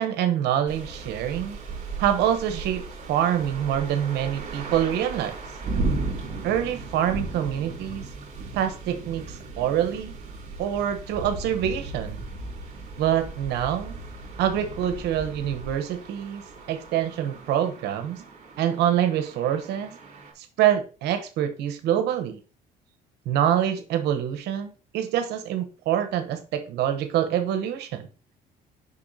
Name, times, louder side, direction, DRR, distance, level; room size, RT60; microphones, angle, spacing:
voice 1, 0.0-1.6 2.0-2.8 3.1-5.4 6.4-8.1 8.5-10.1 10.6-12.2 13.0-14.0 14.4-16.4 16.7-18.2 18.6-19.9 20.4-22.4 23.3-28.1, right 10 dB, 80° right, 8 dB, 0.9 m, -25 dB
sound 1, 0.7-20.3, right 3 dB, 50° right, 2.5 m, -36 dB
6.9 x 5.4 x 2.7 m, 0.33 s
cardioid pair, 110°, 17 cm